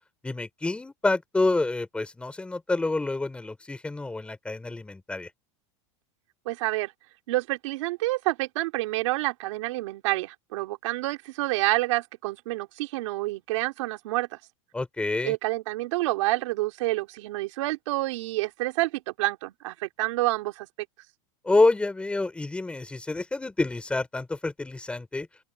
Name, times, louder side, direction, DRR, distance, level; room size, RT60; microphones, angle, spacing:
voice 1, 0.2-5.3 14.7-15.3 21.4-25.3, left 2 dB, 5° left, 4.2 m, -27 dB
voice 2, 6.5-6.9 7.3-14.3 15.2-20.7, right 19 dB, 70° right, 3.9 m, -28 dB
open air
supercardioid pair, 155°, 17 cm